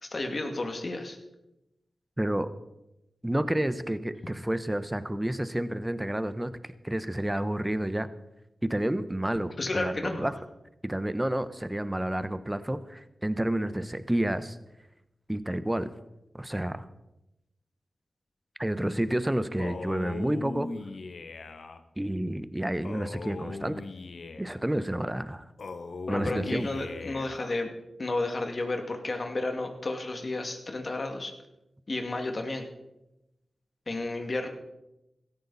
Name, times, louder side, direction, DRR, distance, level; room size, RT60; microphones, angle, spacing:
voice 1, 0.0-1.2 9.6-10.4 26.1-27.7 28.0-31.3 31.9-32.6 33.9-34.5, left 2 dB, 50° left, 4 dB, 2.4 m, -32 dB
voice 2, 2.2-2.5 3.2-8.1 8.6-10.3 10.8-14.6 15.3-15.9 16.3-16.8 18.6-20.7 22.0-23.8 24.4-25.5 26.1-26.7, right 1 dB, 15° right, 12 dB, 1.1 m, -30 dB
Male speech man speaking, 19.6-21.8 22.8-24.7 25.6-27.6, left 3 dB, 70° left, 1.1 m, -39 dB
16.5 x 14.0 x 4.2 m, 0.92 s
cardioid pair, 45°, 0 cm